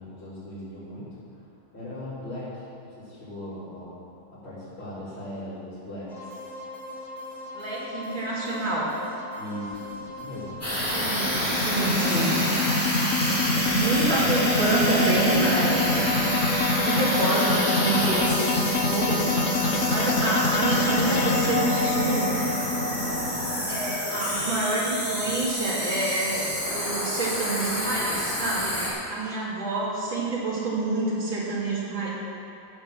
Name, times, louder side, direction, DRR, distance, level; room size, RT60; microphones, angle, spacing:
voice 1, 0.0-1.4 1.7-2.6 3.0-3.9 4.3-6.5 9.3-10.5, left 1 dB, 80° left, -16 dB, 4.7 m, -38 dB
sound 1, 6.1-21.9, left 1 dB, 20° right, 2.1 m, -41 dB
voice 2, 7.5-8.9 10.9-12.4 13.7-16.0 16.7-22.4 23.7-28.8 29.1-32.1, right 2 dB, 70° right, -7 dB, 3.7 m, -27 dB
sound 2, 9.7-24.0, left 2 dB, 50° left, 1.0 m, -26 dB
sound 3, 10.6-28.9, equal, 5° left, 3.6 m, -28 dB
14.5 x 6.5 x 7.7 m, 2.8 s
omnidirectional pair, 2.2 m